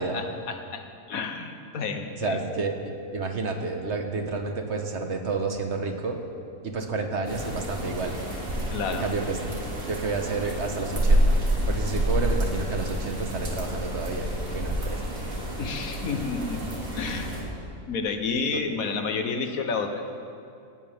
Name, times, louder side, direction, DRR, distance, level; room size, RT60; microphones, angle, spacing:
voice 1, 0.0-2.4 8.7-9.1 15.6-16.6 16.9-17.4 17.9-20.0, left 4 dB, 75° left, 5 dB, 1.5 m, -30 dB
voice 2, 2.2-2.7 3.1-6.2 6.6-8.1 8.9-9.4 9.9-11.4 11.7-15.1 18.5-18.6, right 3 dB, 55° right, 4 dB, 1.5 m, -30 dB
sound 1, 7.2-17.4, right 1 dB, 70° right, 2.7 m, -28 dB
18.0 x 16.0 x 3.6 m, 2.5 s
omnidirectional pair, 1.5 m